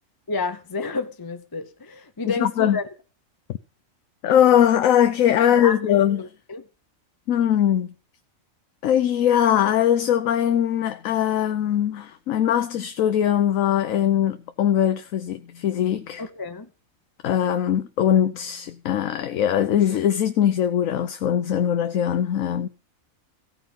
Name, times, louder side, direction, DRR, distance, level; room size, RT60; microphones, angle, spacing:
voice 1, 0.3-2.8 5.4-5.9 6.2-6.6 16.2-16.7, left 4 dB, 20° left, 0.6 m, -30 dB
voice 2, 2.3-2.8 4.2-6.2 7.3-7.9 8.8-16.2 17.2-22.7, left 10 dB, 75° left, 1.1 m, -21 dB
15.5 x 5.1 x 7.3 m
omnidirectional pair, 1.4 m